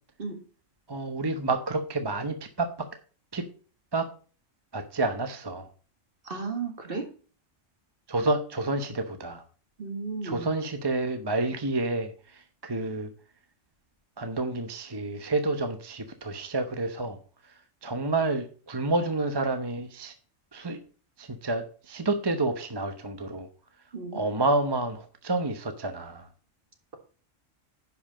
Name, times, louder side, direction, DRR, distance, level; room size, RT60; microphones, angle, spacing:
voice 1, 0.9-2.9 3.3-3.4 3.9-4.1 4.7-5.7 8.1-9.4 10.2-13.1 14.2-17.2 17.8-20.1 20.5-20.8 21.2-23.5 24.1-26.3, right 2 dB, 20° right, 7 dB, 0.8 m, -29 dB
voice 2, 6.2-7.1 9.8-10.5 23.9-24.2, right 4 dB, 45° right, 4 dB, 2.0 m, -34 dB
10.5 x 5.6 x 4.9 m, 0.39 s
omnidirectional pair, 1.3 m